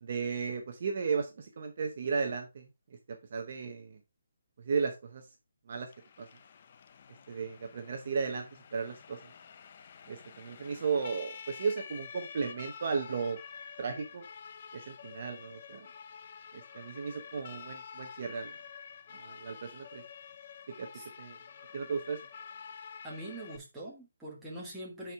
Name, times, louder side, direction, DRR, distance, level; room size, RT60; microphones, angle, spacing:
voice 1, 0.0-4.0 4.6-5.3 5.7-5.9 6.2-6.3 7.3-8.5 8.7-9.2 10.1-13.4 13.8-14.2 14.7-15.9 16.5-18.6 19.2-20.0 20.8-20.9 21.2-21.4 21.7-22.2, right 5 dB, 35° right, 0.8 m, -35 dB
Siren, 5.9-23.6, left 7 dB, 30° left, 0.5 m, -49 dB
voice 2, 23.0-25.1, right 1 dB, 5° right, 1.5 m, -43 dB
9.1 x 4.6 x 3.5 m
hypercardioid pair, 180°, 0 cm